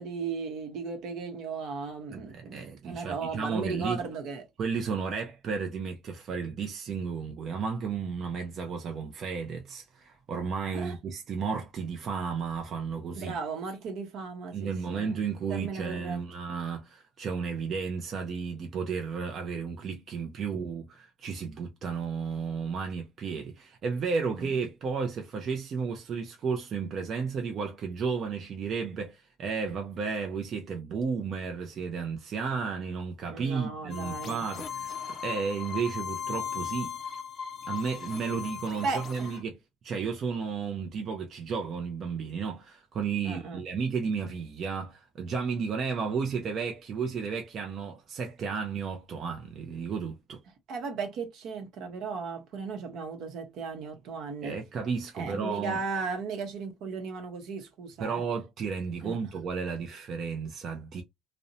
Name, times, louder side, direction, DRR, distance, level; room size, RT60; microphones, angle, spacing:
voice 1, 0.0-4.4 10.7-10.9 13.1-15.2 15.5-16.2 24.4-24.5 33.3-34.4 38.8-39.3 43.2-43.6 50.7-54.6 55.1-58.2 59.0-59.2, right 4 dB, 65° right, 0.8 m, -36 dB
voice 2, 2.1-4.0 4.6-13.3 14.5-36.9 37.6-39.6 39.8-50.4 54.4-55.8 58.0-61.0, right 5 dB, 40° right, 0.4 m, -33 dB
sound 1, 33.9-39.4, left 7 dB, 35° left, 0.4 m, -37 dB
2.5 x 2.0 x 2.6 m
cardioid pair, 155°, 0 cm